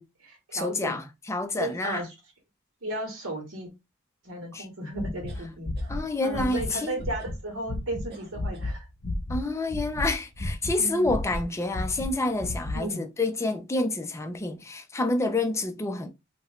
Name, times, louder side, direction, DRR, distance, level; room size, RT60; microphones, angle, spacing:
voice 1, 0.0-1.0 1.6-2.1 2.8-3.7 4.2-5.7 6.2-8.8 10.8-11.2 12.7-13.0, right 1 dB, 80° right, 1.5 m, -35 dB
voice 2, 0.5-2.1 4.5-4.7 5.9-7.0 9.3-16.1, left 2 dB, 15° left, 0.4 m, -28 dB
sound 1, 5.0-7.4 7.7-8.1 8.3-9.4 9.7-10.8 11.0-12.8, left 1 dB, 45° left, 1.2 m, -32 dB
sound 2, 5.3-5.9 6.5-7.4 8.1-8.7, right 5 dB, 50° right, 1.0 m, -50 dB
2.8 x 2.6 x 3.1 m
head